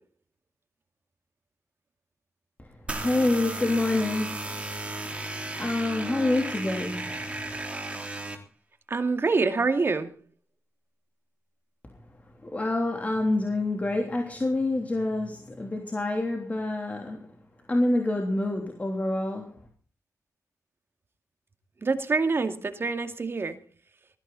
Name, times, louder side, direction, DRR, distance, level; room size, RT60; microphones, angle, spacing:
voice 1, 2.6-4.8 5.6-7.3 12.4-17.2 17.7-19.6, left 2 dB, 25° left, 3.3 m, -27 dB
sound 1, 2.9-8.4, right 2 dB, 20° right, 3.7 m, -34 dB
voice 2, 8.9-10.1 21.8-23.5, right 4 dB, 40° right, 2.3 m, -26 dB
20.0 x 15.0 x 4.1 m
wide cardioid pair, 110°, 6 cm